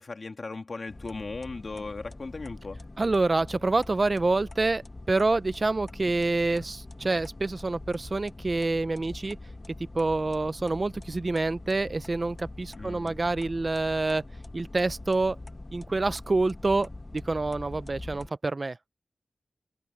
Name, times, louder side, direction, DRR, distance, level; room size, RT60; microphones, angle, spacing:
voice 1, 0.0-2.8 12.7-13.2, left 3 dB, 50° left, 2.8 m, -37 dB
sound 1, 0.9-18.3, left 2 dB, 30° left, 1.2 m, -43 dB
voice 2, 3.0-9.4 9.9-14.2 14.5-15.4 15.7-18.8, right 3 dB, 40° right, 0.5 m, -27 dB
wide cardioid pair, 95°, 0 cm